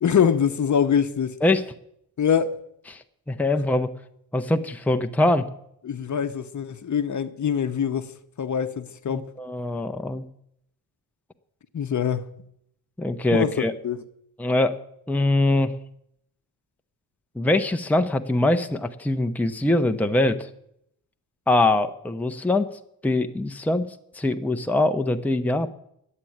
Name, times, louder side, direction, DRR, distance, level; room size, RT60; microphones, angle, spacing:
voice 1, 0.0-1.4 2.2-2.5 5.8-8.1 8.4-9.3 11.7-12.3 13.3-14.0, left 7 dB, 50° left, 1.0 m, -24 dB
voice 2, 2.9-3.9 4.3-5.5 9.1-10.2 13.0-13.7 14.4-14.8 15.1-15.7 17.4-20.5 21.5-22.7 23.0-23.8 24.1-25.7, left 2 dB, 5° left, 0.8 m, -23 dB
11.0 x 8.7 x 9.3 m
cardioid pair, 110°, 39 cm